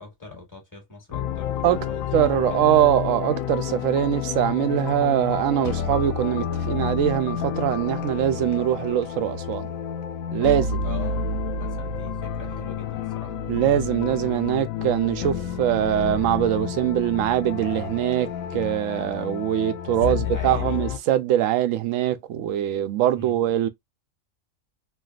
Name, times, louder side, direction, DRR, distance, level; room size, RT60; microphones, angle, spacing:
voice 1, 0.0-2.6 10.8-11.3 11.6-13.3 20.1-20.8 23.1-23.4, left 3 dB, 15° left, 1.5 m, -42 dB
sound 1, 1.1-21.0, left 7 dB, 80° left, 1.0 m, -30 dB
voice 2, 2.1-9.7 10.3-10.9 13.5-23.7, right 12 dB, 75° right, 1.0 m, -23 dB
3.3 x 2.3 x 2.3 m
omnidirectional pair, 1.4 m